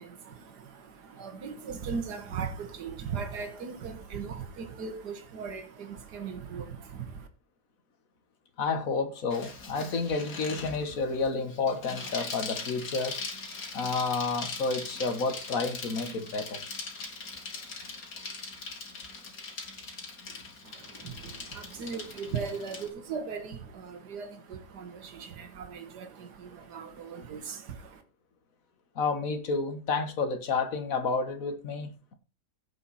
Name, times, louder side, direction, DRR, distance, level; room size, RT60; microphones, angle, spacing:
voice 1, 0.0-7.3 20.6-28.0, right 6 dB, 85° right, 2.0 m, -38 dB
voice 2, 8.6-13.2 13.7-16.7 29.0-32.1, left 4 dB, 60° left, 1.8 m, -30 dB
Bicycle, 9.3-22.9, left 4 dB, 80° left, 2.7 m, -41 dB
16.0 x 5.4 x 4.2 m
omnidirectional pair, 1.7 m